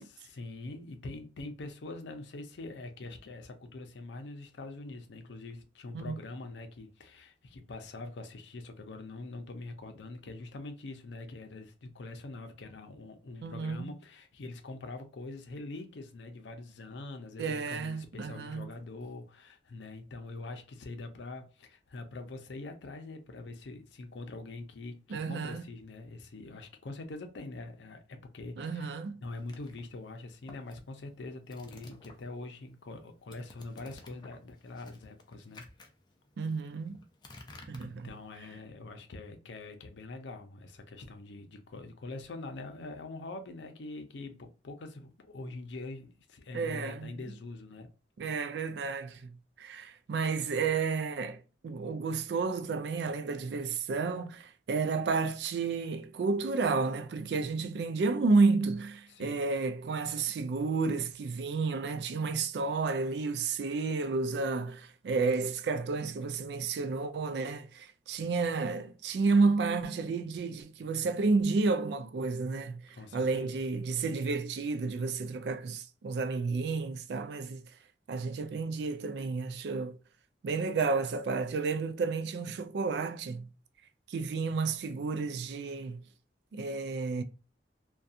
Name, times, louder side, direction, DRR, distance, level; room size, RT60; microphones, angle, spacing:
voice 1, 0.0-28.9 29.2-35.6 37.8-47.9 59.1-59.5 72.9-73.5, left 2 dB, 80° left, 0.5 m, -44 dB
voice 2, 13.4-13.9 17.4-18.7 25.1-25.6 28.6-29.2 36.4-37.0 37.7-38.1 46.5-47.1 48.2-77.6 78.1-80.0 80.4-83.5 84.1-86.0 86.5-87.2, right 4 dB, 65° right, 0.3 m, -31 dB
sound 1, 29.4-32.5 32.8-38.5, left 2 dB, 25° left, 0.4 m, -54 dB
2.6 x 2.2 x 2.3 m
head